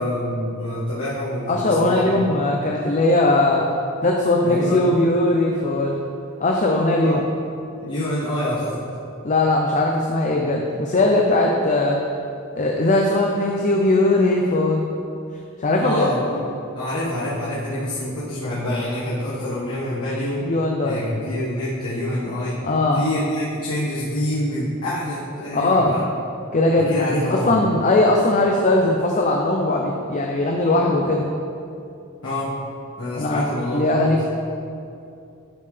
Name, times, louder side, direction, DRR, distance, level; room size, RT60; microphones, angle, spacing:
voice 1, 0.0-2.4 4.4-4.9 7.0-7.2 7.8-8.9 15.8-16.5 16.7-20.4 20.8-26.0 26.9-27.5 32.2-32.5 33.0-34.1, left 1 dB, 75° left, -10 dB, 1.5 m, -26 dB
voice 2, 1.5-3.7 4.0-6.0 6.4-7.2 9.2-12.0 12.5-14.8 15.6-16.1 20.4-21.0 22.6-23.0 25.5-26.0 26.5-26.9 27.3-31.3 33.1-34.3, left 2 dB, 35° left, 0 dB, 0.5 m, -19 dB
11.0 x 5.4 x 3.3 m, 2.6 s
head